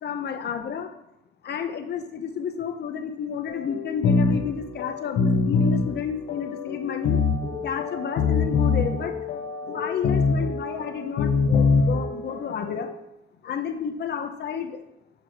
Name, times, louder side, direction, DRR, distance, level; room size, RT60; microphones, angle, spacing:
voice 1, 0.0-0.9 1.4-7.2 7.6-9.1 9.7-12.9 13.4-14.8, left 7 dB, 55° left, 6 dB, 0.8 m, -31 dB
sound 1, 3.5-12.9, left 4 dB, 85° left, 0.9 m, -24 dB
6.6 x 4.9 x 4.6 m, 0.85 s
cardioid pair, 90°, 20 cm